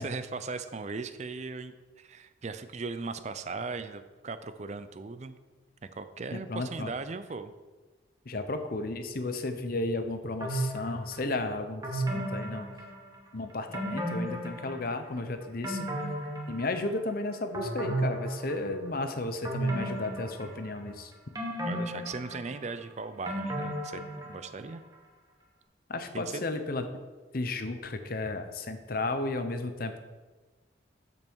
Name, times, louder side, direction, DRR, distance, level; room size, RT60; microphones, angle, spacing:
voice 1, 0.0-5.3 5.9-7.5 21.6-24.8 26.1-26.5, right 4 dB, 35° right, 11 dB, 0.4 m, -38 dB
voice 2, 6.3-6.9 8.3-12.7 13.3-15.9 16.5-21.1 25.9-26.8 27.3-30.0, left 2 dB, 50° left, 8 dB, 0.8 m, -33 dB
sound 1, 10.4-11.2 11.8-13.3 13.7-15.1 15.4-17.1 17.5-18.9 19.4-20.9 21.4-24.6 24.9-25.0, right 1 dB, 20° right, 1.3 m, -34 dB
12.5 x 5.4 x 4.7 m, 1.3 s
head